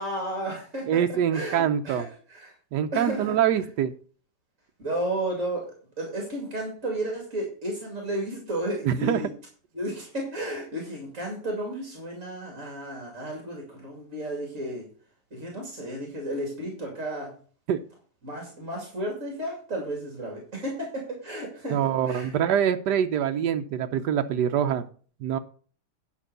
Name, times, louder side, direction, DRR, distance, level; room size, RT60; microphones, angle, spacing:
voice 1, 0.0-2.5 2.9-3.4 4.8-9.3 9.7-14.9 15.3-17.3 18.2-22.3, right 1 dB, 50° right, 1 dB, 2.8 m, -33 dB
voice 2, 0.9-2.1 2.7-3.9 8.8-9.2 17.7-17.8 21.7-24.8 25.2-25.4, right 9 dB, 85° right, 6 dB, 1.3 m, -24 dB
10.0 x 5.3 x 6.6 m, 0.42 s
omnidirectional pair, 1.8 m